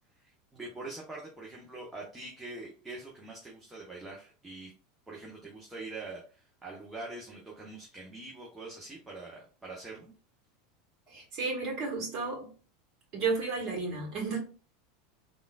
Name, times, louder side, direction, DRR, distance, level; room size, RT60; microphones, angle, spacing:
voice 1, 0.2-4.7 5.1-10.1, right 2 dB, 10° right, 1.0 m, -44 dB
voice 2, 11.1-12.5 13.1-14.4, right 4 dB, 40° right, 1.4 m, -32 dB
3.5 x 2.5 x 2.4 m
figure-of-eight pair, 80°, 0 cm